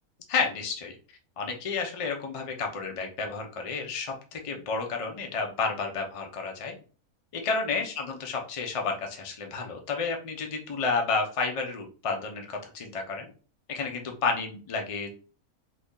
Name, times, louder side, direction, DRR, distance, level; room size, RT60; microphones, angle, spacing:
voice 1, 0.3-1.0 1.4-6.7 7.3-13.3 13.7-15.1, left 4 dB, 65° left, 2 dB, 0.3 m, -31 dB
2.8 x 2.7 x 3.6 m, 0.38 s
omnidirectional pair, 1.6 m